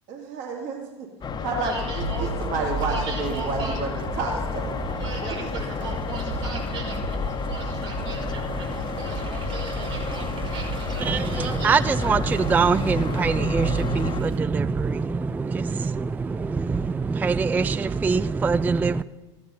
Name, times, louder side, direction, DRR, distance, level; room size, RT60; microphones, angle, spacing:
voice 1, 0.1-1.1 1.4-4.8 5.2-5.5 5.8-6.0 11.4-11.7, right 3 dB, 60° right, 2.5 m, -31 dB
sound 1, 1.2-14.2, left 5 dB, 30° left, 1.0 m, -31 dB
voice 2, 1.6-2.3 2.8-3.8 4.9-12.1, right 4 dB, 80° right, 5.5 m, -38 dB
sound 2, 2.0-14.4, right 6 dB, 35° right, 0.9 m, -34 dB
voice 3, 11.0-19.0, right 4 dB, 10° right, 0.3 m, -23 dB
15.5 x 10.5 x 5.6 m
hypercardioid pair, 75°, 15 cm